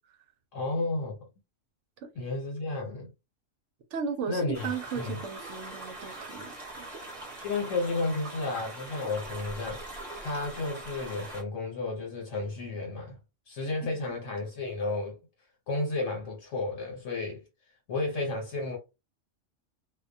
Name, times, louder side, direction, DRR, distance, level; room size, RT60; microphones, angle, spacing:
voice 1, 0.5-1.2 2.2-3.1 4.3-4.7 5.0-5.2 7.4-9.8 10.2-13.1 13.5-15.2 15.7-17.4 17.9-18.8, left 3 dB, 70° left, 1.2 m, -32 dB
voice 2, 3.9-6.9 13.8-13.9, right 6 dB, 70° right, 0.8 m, -36 dB
sound 1, 4.5-11.4, right 2 dB, 30° right, 0.8 m, -42 dB
2.3 x 2.1 x 2.6 m
omnidirectional pair, 1.4 m